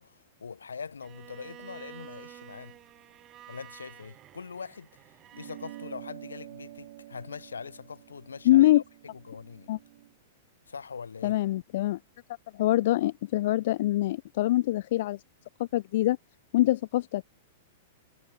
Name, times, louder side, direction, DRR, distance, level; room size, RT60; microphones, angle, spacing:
voice 1, 0.0-2.8 3.5-9.7 10.7-11.4, left 5 dB, 85° left, 2.4 m, -42 dB
Bowed string instrument, 1.0-5.9, right 13 dB, 35° right, 3.3 m, -50 dB
sound 1, 5.3-10.1, right 16 dB, 60° right, 3.5 m, -48 dB
voice 2, 8.5-8.8 9.7-9.8 11.2-12.0 12.5-15.2 15.6-16.2 16.5-17.2, left 15 dB, 60° left, 0.3 m, -24 dB
hypercardioid pair, 105°, 0 cm